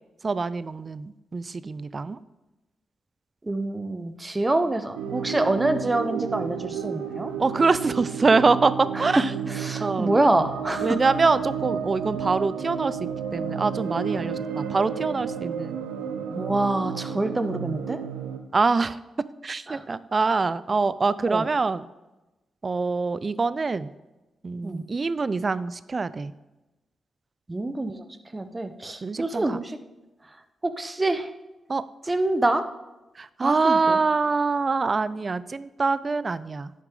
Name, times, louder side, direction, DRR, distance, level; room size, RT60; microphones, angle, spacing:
voice 1, 0.2-2.2 7.4-9.3 9.8-10.2 10.8-13.0 13.3-15.8 18.5-19.0 19.4-21.8 22.6-23.9 24.4-26.3 29.0-29.6 31.7-31.8 33.2-36.7, right 4 dB, 45° right, 17 dB, 0.4 m, -24 dB
voice 2, 3.4-7.3 8.9-9.0 9.5-11.0 16.3-18.0 19.7-19.8 21.3-21.5 24.6-24.8 27.5-28.0 28.3-29.8 30.6-31.3 32.1-32.6 33.4-34.0, right 2 dB, 25° right, 9 dB, 0.9 m, -26 dB
sound 1, 5.0-18.4, right 7 dB, 90° right, 0.7 m, -32 dB
10.5 x 6.5 x 3.8 m, 1.0 s
supercardioid pair, 40°, 0 cm